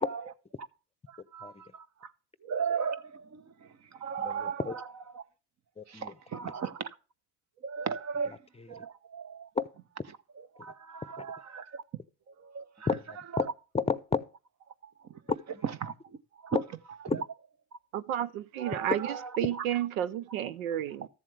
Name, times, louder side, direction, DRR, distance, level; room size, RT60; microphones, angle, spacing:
voice 1, 1.1-2.1 2.4-4.8 5.1-5.2 5.9-6.9 7.6-8.4 8.7-9.5 10.6-11.8 12.4-12.9 13.3-13.4 14.8-14.9 15.8-15.9 16.4-16.6 18.6-19.3 20.3-20.4 21.0-21.1, right 6 dB, 40° right, 1.0 m, -36 dB
voice 2, 4.2-4.8 5.8-6.2 6.4-6.5 8.5-8.8 9.5-9.7 10.0-10.1 11.2-11.3 12.9-13.5 13.7-14.2 15.3-15.7 16.5-16.6 17.1-17.2 18.9-19.0, left 4 dB, 15° left, 0.7 m, -32 dB
voice 3, 17.9-19.0 19.4-21.1, right 11 dB, 85° right, 0.6 m, -31 dB
13.5 x 7.4 x 3.3 m
hypercardioid pair, 65°, 40 cm